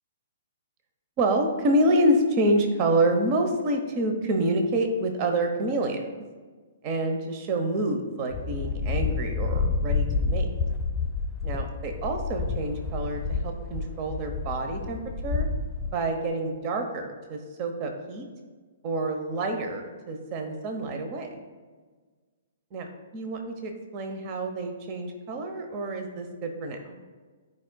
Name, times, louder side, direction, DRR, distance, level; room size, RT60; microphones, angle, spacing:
voice 1, 1.2-6.1 6.8-10.5 11.4-15.5 15.9-18.3 18.8-21.4 22.7-22.9 23.1-27.0, right 1 dB, 35° right, 4 dB, 0.9 m, -27 dB
sound 1, 8.3-16.0, left 4 dB, 15° left, 0.8 m, -29 dB
13.0 x 4.8 x 2.3 m, 1.4 s
figure-of-eight pair, 125°, 0 cm